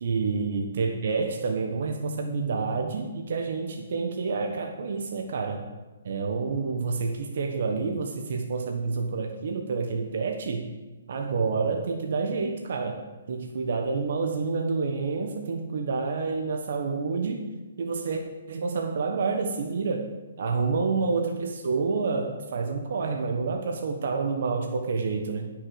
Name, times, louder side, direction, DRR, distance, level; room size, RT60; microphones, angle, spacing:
voice 1, 0.0-5.7 6.0-10.7 11.1-17.5 17.8-18.2 18.5-20.1 20.4-25.5, right 4 dB, 60° right, 3 dB, 1.2 m, -28 dB
10.0 x 6.3 x 7.7 m, 1.2 s
hypercardioid pair, 150°, 0 cm